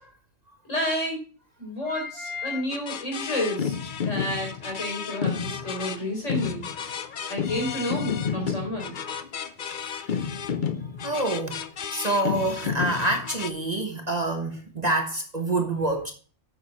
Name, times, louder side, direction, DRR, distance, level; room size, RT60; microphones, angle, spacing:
voice 1, 0.6-1.2 1.6-3.8 4.0-6.6 7.3-9.0, left 1 dB, 65° left, 4.8 m, -30 dB
voice 2, 1.8-2.6 9.8-10.0 11.0-11.6 11.9-16.1, right 2 dB, 35° right, 1.3 m, -27 dB
sound 1, 2.7-13.5, left 7 dB, 50° left, 0.7 m, -31 dB
9.0 x 6.7 x 4.1 m
omnidirectional pair, 1.3 m